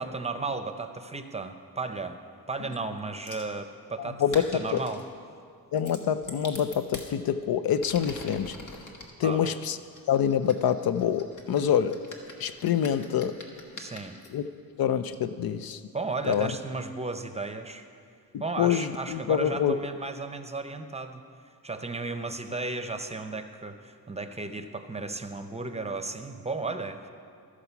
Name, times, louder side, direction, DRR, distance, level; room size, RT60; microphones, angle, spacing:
voice 1, 0.0-2.2 2.5-5.0 9.2-9.6 13.8-14.2 15.9-17.8 18.4-21.2 21.6-27.1, right 3 dB, 15° right, 8 dB, 0.7 m, -34 dB
sound 1, 3.3-3.5 4.2-5.1 5.8-7.1 7.7-9.1 9.9-14.3 15.1-15.2 15.7-15.8 16.3-16.4, left 2 dB, 55° left, 1.4 m, -44 dB
voice 2, 4.0-4.8 5.7-8.6 9.2-9.8 10.1-12.0 12.4-13.4 14.3-14.4 14.8-15.8 16.2-16.5 18.3-19.8, left 9 dB, 70° left, 12 dB, 0.5 m, -26 dB
13.5 x 4.9 x 6.9 m, 2.3 s
cardioid pair, 70°, 37 cm